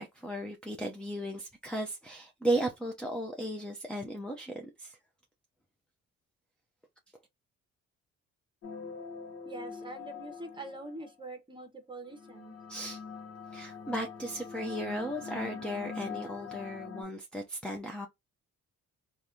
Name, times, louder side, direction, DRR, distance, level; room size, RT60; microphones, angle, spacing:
voice 1, 0.0-5.0 12.7-13.0 13.5-18.1, right 1 dB, 5° left, 0.6 m, -35 dB
sound 1, 8.6-11.1 12.0-17.0, left 6 dB, 55° left, 0.9 m, -43 dB
voice 2, 9.4-12.6, right 2 dB, 15° right, 1.2 m, -44 dB
3.2 x 2.6 x 2.7 m
cardioid pair, 90°, 30 cm